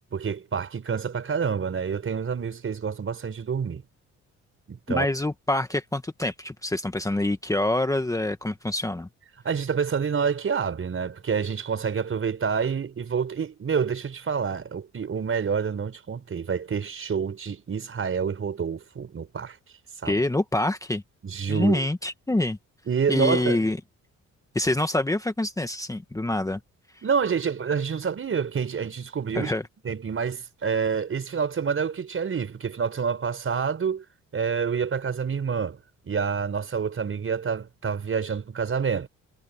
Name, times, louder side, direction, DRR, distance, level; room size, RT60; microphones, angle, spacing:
voice 1, 0.1-3.8 4.7-5.1 9.4-19.6 20.0-20.1 21.2-21.9 22.9-23.6 27.0-29.5 29.8-34.0 34.3-39.1, right 6 dB, 45° right, 5.2 m, -28 dB
voice 2, 4.9-9.1 20.0-21.0 21.5-22.6 23.1-23.8 24.5-26.6 29.3-29.6, left 1 dB, 10° left, 1.4 m, -26 dB
cardioid pair, 90°, 30 cm